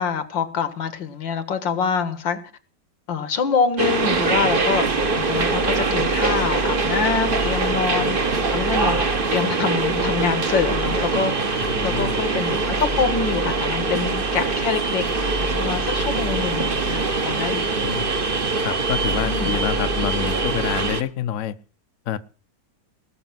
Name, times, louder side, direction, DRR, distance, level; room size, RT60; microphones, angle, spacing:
voice 1, 0.0-2.4 3.1-4.9 5.2-8.2 8.5-15.1 15.5-17.7 19.3-19.5, left 6 dB, 80° left, 2.3 m, -25 dB
sound 1, 3.8-21.0, right 3 dB, 30° right, 1.3 m, -23 dB
voice 2, 11.6-12.2 17.8-18.1 18.6-21.6 22.1-22.2, left 10 dB, 55° left, 1.1 m, -27 dB
19.0 x 6.8 x 7.6 m
omnidirectional pair, 2.0 m